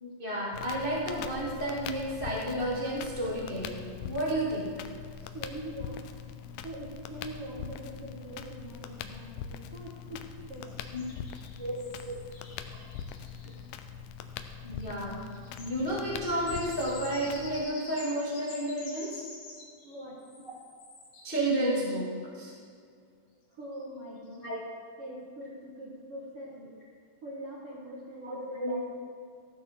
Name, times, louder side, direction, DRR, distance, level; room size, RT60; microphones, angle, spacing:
voice 1, 0.0-4.7 10.9-11.0 11.6-11.7 12.0-12.1 14.6-15.3 15.6-19.2 21.2-22.0 22.3-22.5 24.4-24.6 28.2-28.9, right 1 dB, 75° left, -6 dB, 0.5 m, -31 dB
Crackle, 0.5-17.6, left 7 dB, 90° left, 2.1 m, -42 dB
voice 2, 5.1-6.0 6.6-10.8 19.8-20.2 23.5-24.6 25.0-26.7 27.2-28.9, right 1 dB, 65° right, -5 dB, 1.4 m, -43 dB
sound 1, 10.7-13.6 14.4-14.5 14.8-22.0 23.8-23.9 24.3-24.5, left 3 dB, 50° left, 2.8 m, -48 dB
14.5 x 12.5 x 3.7 m, 2.2 s
omnidirectional pair, 5.0 m